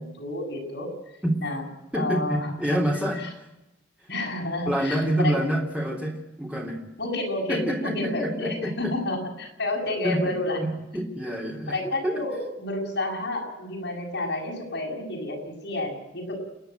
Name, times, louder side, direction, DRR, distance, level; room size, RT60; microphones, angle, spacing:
voice 1, 0.2-0.9 1.4-1.6 1.9-2.8 3.2-3.3 4.1-5.4 7.0-10.6 11.7-16.4, left 2 dB, 60° left, 0 dB, 7.2 m, -30 dB
voice 2, 1.9-3.5 4.7-6.8 7.5-8.9 10.0-10.3 10.6-12.2, right 1 dB, 5° right, -1 dB, 3.2 m, -27 dB
29.0 x 11.0 x 9.1 m, 0.95 s
head